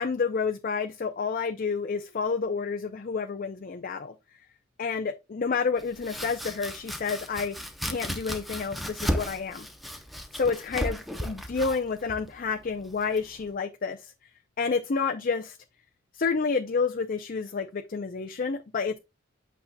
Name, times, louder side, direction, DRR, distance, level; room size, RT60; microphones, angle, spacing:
voice 1, 0.0-4.1 4.8-7.6 7.8-9.7 10.3-11.0 11.2-14.1 14.6-15.6 16.1-19.0, left 5 dB, 45° left, 0.5 m, -29 dB
Domestic sounds home sounds, 5.8-13.5, equal, ahead, 0.8 m, -35 dB
8.8 x 5.4 x 2.2 m
head